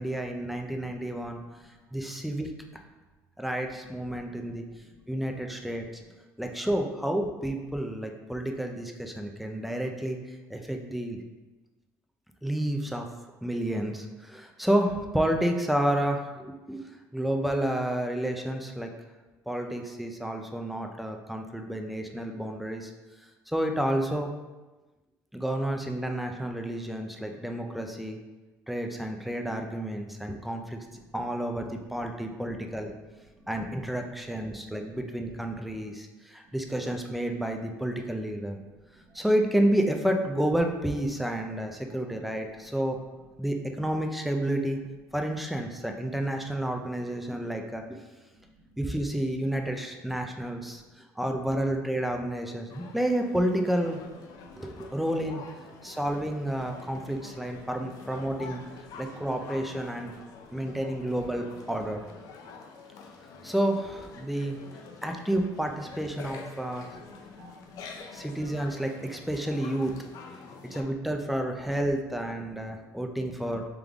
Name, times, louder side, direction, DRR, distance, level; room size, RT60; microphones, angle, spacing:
voice 1, 0.0-1.4 1.9-2.5 3.4-4.7 5.1-5.9 6.4-10.2 10.5-11.2 12.4-13.1 13.4-16.8 17.1-18.9 19.5-22.9 23.5-24.3 25.3-28.2 28.7-30.8 31.1-32.9 33.5-38.6 39.1-43.0 43.4-44.8 45.1-48.0 48.8-50.8 51.2-54.0 54.5-55.4 55.8-58.6 59.0-60.1 60.5-62.0 63.4-64.6 65.0-66.9 68.1-70.0 70.6-73.7, right 1 dB, ahead, 3 dB, 0.4 m, -30 dB
voice 2, 0.6-1.3 4.0-5.0 30.9-31.1 33.3-33.5 36.4-36.6 38.4-39.2 41.8-42.3 42.6-42.7 48.3-48.8 50.8-50.9 54.4-55.0 59.1-59.2 66.7-68.6, right 2 dB, 50° right, -5 dB, 1.2 m, -58 dB
sound 1, 52.7-70.8, left 5 dB, 65° left, 0.5 m, -47 dB
3.6 x 3.4 x 3.4 m, 1.2 s
cardioid pair, 150°, 7 cm